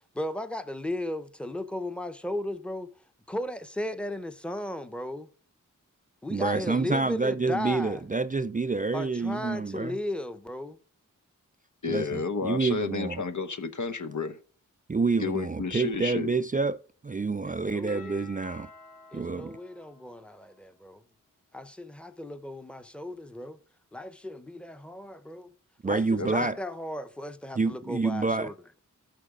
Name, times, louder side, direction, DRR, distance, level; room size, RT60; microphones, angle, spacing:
voice 1, 0.1-2.9 3.3-5.3 6.2-8.0 8.9-10.8 17.4-18.3 19.1-21.0 21.5-23.6 23.9-25.5 25.8-28.8, left 1 dB, 5° left, 0.8 m, -36 dB
voice 2, 6.3-10.0 11.9-13.2 14.9-16.8 17.0-18.7 19.1-19.6 25.8-26.6 27.6-28.5, right 3 dB, 25° right, 0.3 m, -28 dB
voice 3, 11.8-14.4 15.2-16.3 26.2-26.5, left 5 dB, 60° left, 0.8 m, -31 dB
Doorbell, 17.9-20.7, left 4 dB, 25° left, 1.6 m, -52 dB
14.0 x 5.9 x 3.7 m
wide cardioid pair, 75°, 33 cm